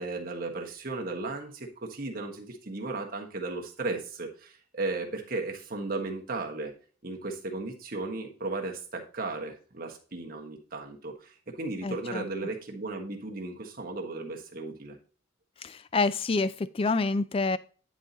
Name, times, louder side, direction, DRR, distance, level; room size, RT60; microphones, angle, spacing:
voice 1, 0.0-6.7 7.0-15.0, right 3 dB, 45° right, 1.4 m, -35 dB
voice 2, 11.8-12.2 15.6-17.6, left 3 dB, 25° left, 0.3 m, -27 dB
10.0 x 4.2 x 3.9 m
head